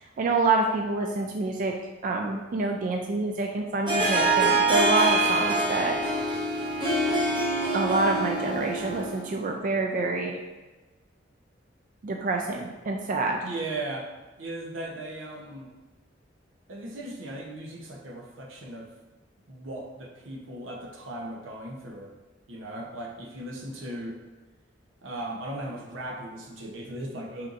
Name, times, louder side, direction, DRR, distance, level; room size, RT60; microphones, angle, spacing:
voice 1, 0.2-1.7 2.0-6.0 7.7-10.4 12.0-13.4, right 3 dB, 45° right, 2 dB, 0.3 m, -27 dB
Harp, 3.9-9.3, right 2 dB, 25° right, 0.7 m, -25 dB
voice 2, 13.4-14.1 14.4-15.7 16.7-18.9 19.5-22.1 22.5-24.2 25.0-27.5, right 1 dB, 90° right, 0 dB, 0.8 m, -37 dB
4.4 x 3.9 x 2.5 m, 1.2 s
head